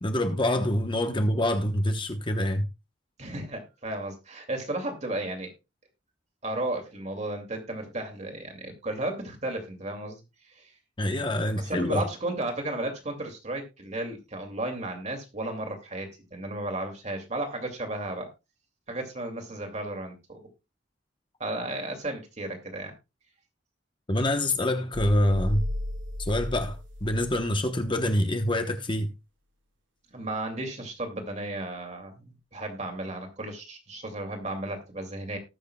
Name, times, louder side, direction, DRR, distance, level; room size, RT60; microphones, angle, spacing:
voice 1, 0.0-2.6 11.0-12.0 24.1-25.6 26.2-29.1, left 1 dB, 25° left, 1.0 m, -26 dB
voice 2, 3.2-5.5 6.4-10.2 10.5-10.7 11.6-18.3 18.9-20.4 21.4-22.9 30.1-35.4, right 2 dB, 40° right, 2.5 m, -34 dB
sound 1, 24.9-27.5 27.8-28.0, left 1 dB, 70° right, 1.8 m, -33 dB
19.0 x 6.5 x 2.3 m
head